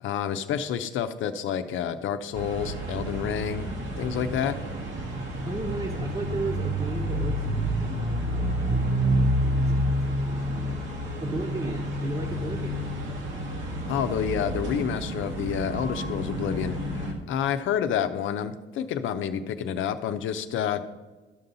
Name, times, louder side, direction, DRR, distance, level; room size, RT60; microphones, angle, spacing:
voice 1, 0.0-3.6 4.0-4.6 13.9-20.9, left 8 dB, 80° left, 9 dB, 0.7 m, -29 dB
sound 1, 2.3-17.1, equal, 75° right, 1.7 m, -29 dB
voice 2, 5.5-12.9, right 3 dB, 30° right, -1 dB, 1.1 m, -36 dB
12.5 x 5.5 x 4.0 m, 1.2 s
cardioid pair, 90°, 20 cm